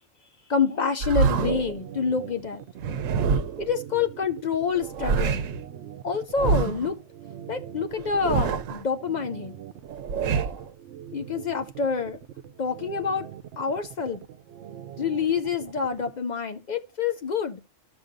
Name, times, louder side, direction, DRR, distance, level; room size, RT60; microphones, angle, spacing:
voice 1, 0.5-2.6 3.6-5.5 6.0-7.0 7.5-9.5 11.1-12.2 12.6-13.3 13.6-14.2 15.0-17.6, left 5 dB, 60° left, 0.4 m, -27 dB
sound 1, 1.0-1.8 2.8-3.7 4.7-5.6 6.3-6.9 8.0-8.8 9.9-10.7, right 5 dB, 85° right, 1.0 m, -26 dB
sound 2, 1.4-16.1, right 10 dB, 65° right, 0.8 m, -43 dB
12.5 x 6.3 x 2.5 m
omnidirectional pair, 1.3 m